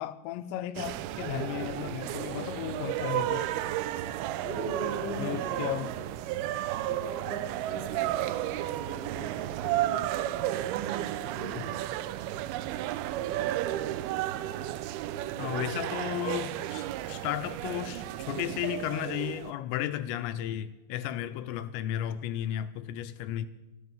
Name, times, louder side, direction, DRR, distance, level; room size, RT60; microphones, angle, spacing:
voice 1, 0.0-3.5 5.2-5.9 11.6-11.7 15.4-23.5, left 11 dB, 85° left, 2.9 m, -34 dB
sound 1, 0.8-19.5, right 13 dB, 85° right, 2.2 m, -33 dB
voice 2, 4.4-5.6 6.0-6.1 6.9-10.5 11.0-11.8, right 1 dB, 35° right, 3.7 m, -41 dB
13.5 x 12.0 x 7.2 m
omnidirectional pair, 5.1 m